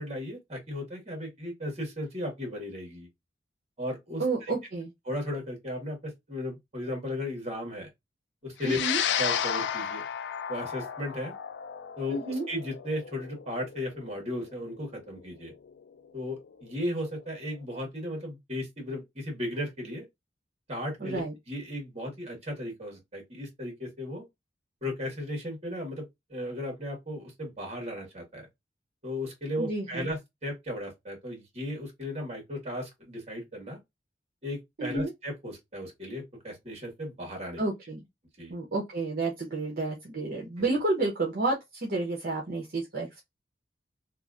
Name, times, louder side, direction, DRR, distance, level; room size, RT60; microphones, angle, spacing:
voice 1, 0.0-3.1 3.8-4.5 5.0-7.9 8.4-10.1 10.5-11.3 12.0-15.5 16.1-20.0 20.7-24.2 24.8-28.5 29.0-33.8 34.4-37.6 38.4-38.6 40.6-40.7, left 1 dB, 35° right, 1.4 m, -36 dB
voice 2, 4.2-4.9 8.6-9.0 12.1-12.4 21.0-21.3 29.6-30.1 34.8-35.1 37.6-38.0 38.5-43.2, right 2 dB, 55° right, 0.7 m, -30 dB
sound 1, 8.6-17.2, left 9 dB, 75° left, 0.3 m, -34 dB
3.0 x 2.4 x 2.4 m
head